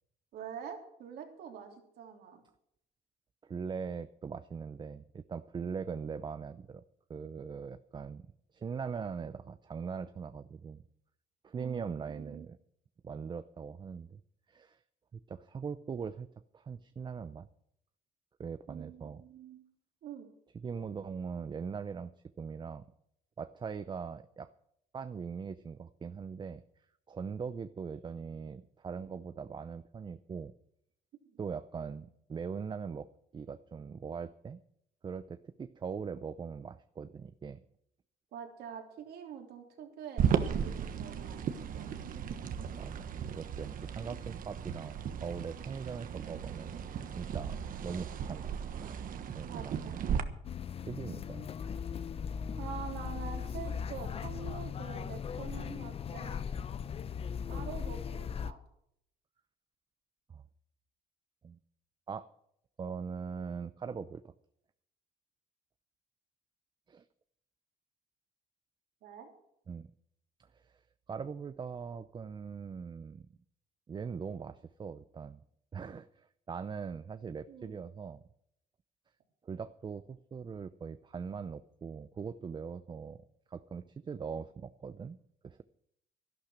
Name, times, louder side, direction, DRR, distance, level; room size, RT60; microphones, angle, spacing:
voice 1, 0.3-2.4 11.5-12.5 18.7-19.6 20.0-20.3 38.3-41.9 49.4-50.0 52.6-56.4 57.5-58.6 69.0-69.3 77.5-77.8, right 7 dB, 70° right, 3 dB, 3.3 m, -46 dB
voice 2, 3.4-6.8 7.1-8.3 8.5-10.8 11.4-12.6 13.0-14.2 14.5-14.8 15.1-16.3 16.5-17.5 18.4-19.2 20.5-22.1 22.4-22.9 23.4-24.5 24.9-26.6 27.1-30.5 31.4-34.6 35.0-37.6 40.6-40.8 42.7-46.9 47.2-50.3 50.8-51.5 60.3-60.4 61.4-61.6 62.1-62.3 62.8-64.3 66.9-67.1 69.7-69.9 70.4-70.8 71.1-73.3 73.9-75.4 75.7-78.2 79.4-83.2 83.5-85.2 85.4-85.6, right 6 dB, 25° right, 12 dB, 0.5 m, -41 dB
sound 1, 40.2-50.2, right 8 dB, 55° right, 1.2 m, -35 dB
sound 2, 50.4-58.5, left 7 dB, 35° left, 0.6 m, -38 dB
12.0 x 11.5 x 6.3 m, 0.73 s
cardioid pair, 110°, 17 cm